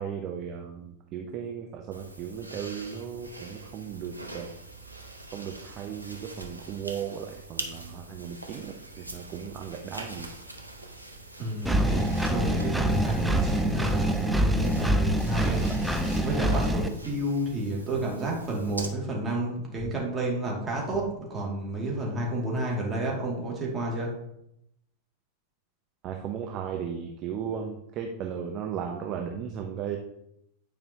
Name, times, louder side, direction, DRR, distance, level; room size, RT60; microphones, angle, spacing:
voice 1, 0.0-4.5 5.3-10.3 26.0-30.0, right 8 dB, 35° right, 3 dB, 0.7 m, -36 dB
sound 1, 1.9-18.9, right 2 dB, 85° right, 0.8 m, -43 dB
voice 2, 11.4-15.6 16.2-24.2, right 1 dB, 20° right, -3 dB, 2.4 m, -30 dB
Engine, 11.7-16.9, equal, 5° right, 0.6 m, -25 dB
9.4 x 5.2 x 2.9 m, 0.79 s
figure-of-eight pair, 90°, 0 cm